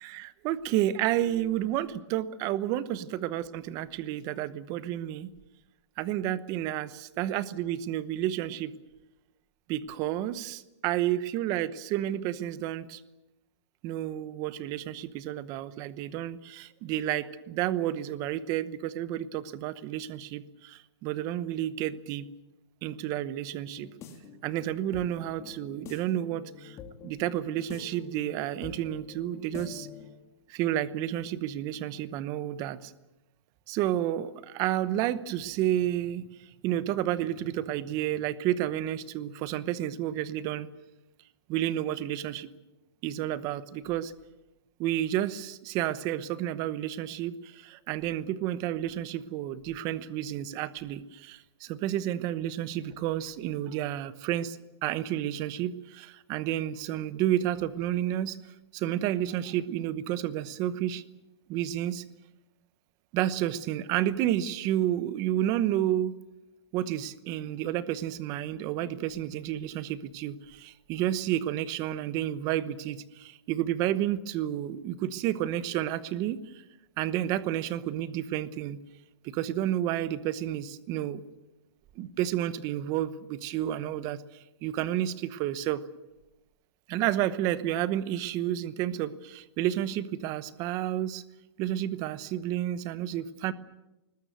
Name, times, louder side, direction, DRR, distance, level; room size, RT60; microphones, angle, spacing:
voice 1, 0.0-5.3 6.0-8.7 9.7-13.0 13.8-22.2 22.8-23.9 24.4-26.8 27.0-29.9 30.5-32.9 33.7-40.7 41.5-42.5 43.0-44.1 44.8-58.4 58.7-61.0 61.5-62.0 63.1-66.1 66.7-76.6 77.0-78.8 79.2-81.2 82.0-84.2 84.6-85.8 86.9-91.2 91.6-93.5, right 12 dB, 25° right, 16 dB, 0.9 m, -31 dB
sound 1, 23.7-30.2, left 6 dB, 20° left, 2.6 m, -46 dB
21.5 x 20.0 x 9.3 m, 0.98 s
hypercardioid pair, 160°, 15 cm